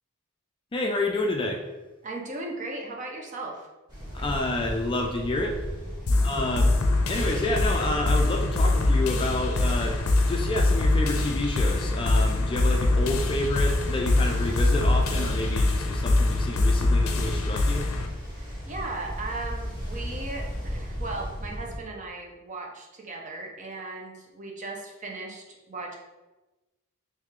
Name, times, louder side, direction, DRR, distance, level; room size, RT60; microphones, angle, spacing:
voice 1, 0.7-1.6 4.1-5.6 6.2-6.7 7.1-10.0 10.3-17.9, left 2 dB, 25° left, 1 dB, 0.3 m, -29 dB
voice 2, 2.0-3.7 6.0-6.2 18.3-26.0, right 2 dB, 35° right, 0 dB, 0.6 m, -37 dB
Ocean, 3.9-21.8, equal, 20° right, 1.4 m, -37 dB
sound 1, 6.1-18.1, left 2 dB, 85° left, 0.5 m, -24 dB
Fire, 13.1-17.7, right 1 dB, 80° right, 0.7 m, -38 dB
3.5 x 3.2 x 3.2 m, 1.1 s
head